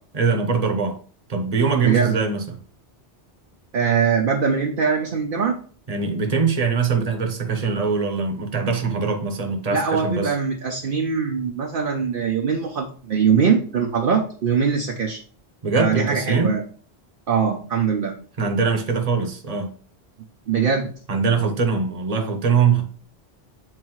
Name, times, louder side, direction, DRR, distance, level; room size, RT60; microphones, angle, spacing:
voice 1, 0.1-1.0 1.3-2.6 5.9-10.3 15.6-16.5 18.4-19.7 21.1-22.8, right 5 dB, 35° right, 1.0 m, -22 dB
voice 2, 1.8-2.2 3.7-5.6 9.7-15.2 15.8-16.6 17.3-18.1 20.5-20.9, right 6 dB, 55° right, 0.8 m, -22 dB
7.8 x 4.1 x 3.1 m
omnidirectional pair, 1.1 m